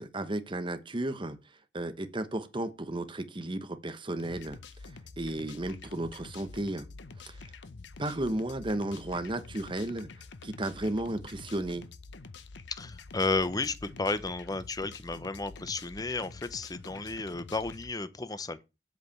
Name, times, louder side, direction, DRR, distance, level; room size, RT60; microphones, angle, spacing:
voice 1, 0.0-1.4 1.7-4.6 5.2-6.9 7.2-7.5 8.0-10.1 10.4-11.9, right 1 dB, 25° right, 1.0 m, -34 dB
sound 1, 4.2-17.9, left 3 dB, 75° left, 0.8 m, -47 dB
voice 2, 12.8-18.6, left 3 dB, 20° left, 0.7 m, -33 dB
8.0 x 4.9 x 7.1 m
head